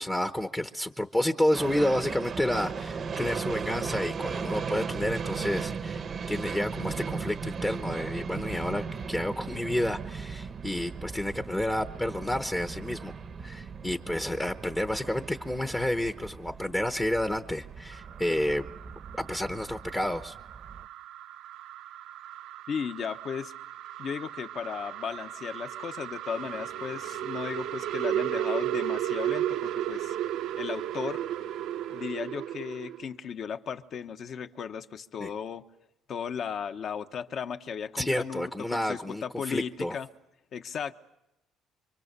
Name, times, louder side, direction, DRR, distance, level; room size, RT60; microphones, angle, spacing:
voice 1, 0.0-13.2 13.4-18.6 19.3-20.3 35.2-35.3 37.9-39.9, left 1 dB, 10° left, 0.9 m, -30 dB
sound 1, 1.5-20.9, right 5 dB, 35° right, 0.9 m, -37 dB
sound 2, 17.9-33.0, right 12 dB, 70° right, 0.8 m, -35 dB
voice 2, 22.7-23.5 24.0-30.1 30.6-31.2 31.9-35.7 36.1-40.1 40.5-40.9, left 7 dB, 45° left, 1.2 m, -36 dB
sound 3, 26.3-32.1, left 8 dB, 80° left, 2.3 m, -54 dB
27.0 x 25.0 x 6.8 m
cardioid pair, 150°, 0 cm